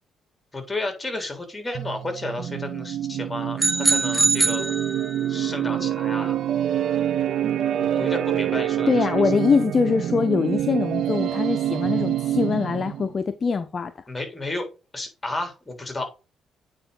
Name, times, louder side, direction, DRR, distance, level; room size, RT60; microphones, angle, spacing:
voice 1, 0.5-4.7 5.3-6.4 7.8-9.2 14.1-14.7 14.9-16.1, left 2 dB, 15° left, 3.6 m, -32 dB
sound 1, 1.7-13.1, right 11 dB, 70° right, 0.6 m, -26 dB
sound 2, 3.6-5.4, right 3 dB, 10° right, 0.9 m, -23 dB
voice 2, 8.9-13.9, left 5 dB, 40° left, 0.7 m, -23 dB
8.9 x 4.7 x 3.9 m
cardioid pair, 90°, 0 cm